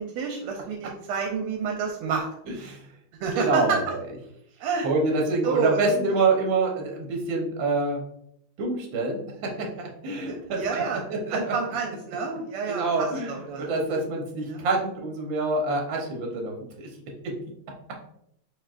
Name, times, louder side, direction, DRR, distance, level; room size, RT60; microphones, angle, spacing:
voice 1, 0.0-2.3 3.2-3.6 4.6-4.9 5.4-5.9 10.3-11.0 11.3-13.0 13.3-13.8 14.5-14.6, right 5 dB, 80° right, 2 dB, 1.5 m, -29 dB
voice 2, 2.4-2.9 3.3-4.1 4.8-8.0 8.6-11.5 12.7-16.9 17.2-17.4, right 3 dB, 65° right, 1 dB, 1.6 m, -27 dB
4.6 x 4.5 x 2.4 m, 0.74 s
omnidirectional pair, 2.4 m